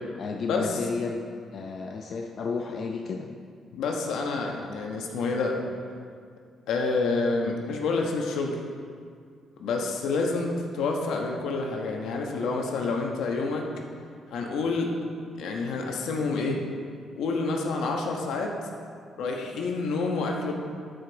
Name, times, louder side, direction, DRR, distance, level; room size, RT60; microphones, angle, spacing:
voice 1, 0.2-1.2 1.5-3.3, left 4 dB, 55° left, 2 dB, 0.6 m, -32 dB
voice 2, 3.7-5.6 6.7-8.6 9.6-13.7 14.3-14.9 15.4-16.6 17.2-18.5 19.2-20.5, left 3 dB, 80° left, 1 dB, 1.1 m, -28 dB
12.5 x 5.2 x 4.0 m, 2.2 s
cardioid pair, 90°, 0 cm